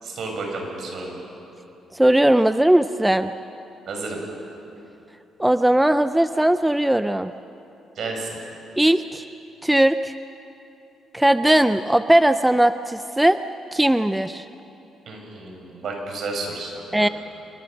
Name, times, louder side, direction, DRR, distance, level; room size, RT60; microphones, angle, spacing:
voice 1, 0.0-1.2 3.9-4.2 8.0-8.4 15.1-17.1, right 3 dB, 60° right, 1 dB, 6.5 m, -31 dB
voice 2, 1.9-3.3 5.4-7.3 8.8-9.2 9.6-10.1 11.1-13.4 13.7-14.5 16.9-17.1, right 1 dB, 5° right, 11 dB, 0.5 m, -18 dB
27.0 x 23.0 x 6.6 m, 2.9 s
cardioid pair, 90°, 0 cm